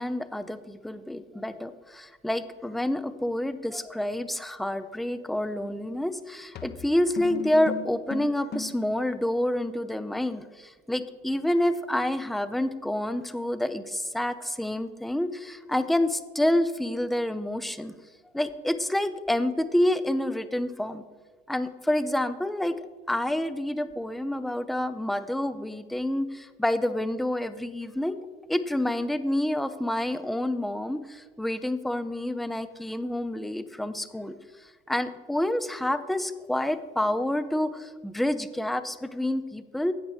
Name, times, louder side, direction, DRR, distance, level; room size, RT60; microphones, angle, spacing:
voice 1, 0.0-17.9 18.3-21.0 21.5-22.7 23.1-34.4 34.9-39.9, left 1 dB, ahead, 12 dB, 0.4 m, -28 dB
sound 1, 5.7-5.9 6.5-8.9, left 5 dB, 35° left, 0.8 m, -37 dB
10.5 x 8.0 x 3.3 m, 1.4 s
figure-of-eight pair, 65°, 29 cm